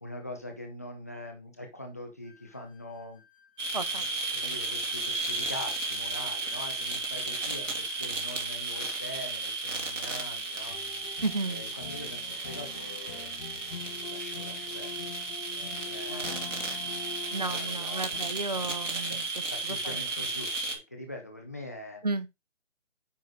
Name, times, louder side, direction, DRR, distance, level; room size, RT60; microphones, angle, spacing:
voice 1, 0.0-3.2 4.3-10.8 11.5-13.3 14.0-15.2 15.5-16.5 17.3-18.2 18.5-18.6 19.1-19.2 19.5-22.0, left 1 dB, 15° left, 0.7 m, -43 dB
sound 1, 2.2-8.3, left 3 dB, 5° right, 1.9 m, -61 dB
sound 2, 3.6-20.7, right 3 dB, 80° right, 2.7 m, -34 dB
voice 2, 3.7-4.1 11.2-11.7 16.1-16.3 17.3-19.2 19.7-19.8 22.0-22.3, right 3 dB, 35° right, 0.5 m, -33 dB
sound 3, 10.7-18.2, left 6 dB, 45° left, 0.9 m, -44 dB
9.3 x 4.7 x 3.7 m
hypercardioid pair, 170°, 37 cm